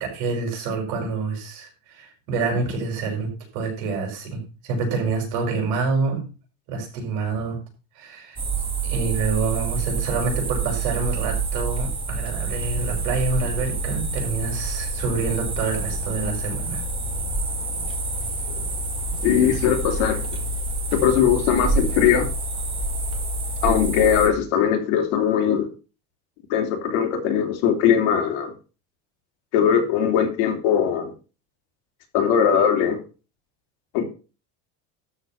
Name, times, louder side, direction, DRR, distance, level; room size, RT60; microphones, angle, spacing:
voice 1, 0.0-6.3 6.7-7.6 8.0-8.4 8.8-16.8, right 4 dB, 60° right, 2 dB, 5.6 m, -27 dB
sound 1, 8.4-24.3, right 3 dB, 15° right, 1.9 m, -27 dB
voice 2, 19.2-20.2 20.9-22.3 23.6-25.7 26.5-28.5 29.5-31.1 32.1-33.0 33.9-34.0, left 8 dB, 85° left, 3 dB, 3.2 m, -20 dB
12.5 x 4.5 x 7.0 m, 0.34 s
cardioid pair, 180°, 33 cm